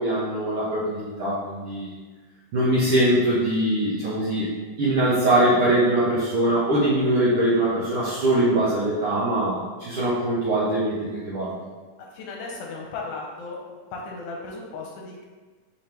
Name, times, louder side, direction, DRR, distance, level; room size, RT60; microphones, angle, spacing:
voice 1, 0.0-1.9 2.5-4.5 4.8-11.5, right 1 dB, 90° right, -9 dB, 1.2 m, -22 dB
voice 2, 12.0-13.6 13.9-15.3, left 3 dB, 80° left, -1 dB, 2.1 m, -36 dB
5.6 x 2.8 x 3.3 m, 1.4 s
omnidirectional pair, 3.7 m